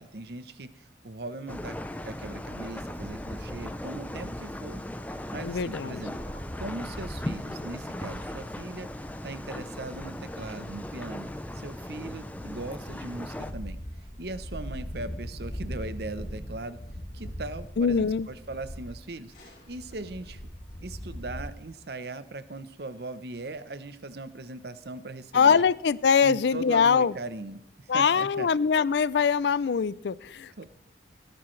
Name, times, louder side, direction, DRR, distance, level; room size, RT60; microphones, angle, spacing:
voice 1, 0.0-1.8 2.0-4.8 5.3-6.1 6.6-8.9 9.2-11.3 11.6-13.8 14.2-16.8 17.1-19.3 19.7-20.5 20.8-25.6 26.2-28.5 30.6-30.7, right 2 dB, 65° right, 13 dB, 0.8 m, -39 dB
sound 1, 1.5-13.5, left 1 dB, 10° left, 0.6 m, -38 dB
sound 2, 2.9-21.4, equal, 45° left, 3.7 m, -42 dB
voice 2, 5.4-6.0 17.8-18.3 25.3-27.1 27.9-30.6, left 6 dB, 75° left, 20 dB, 0.4 m, -23 dB
18.0 x 10.5 x 3.2 m, 0.80 s
head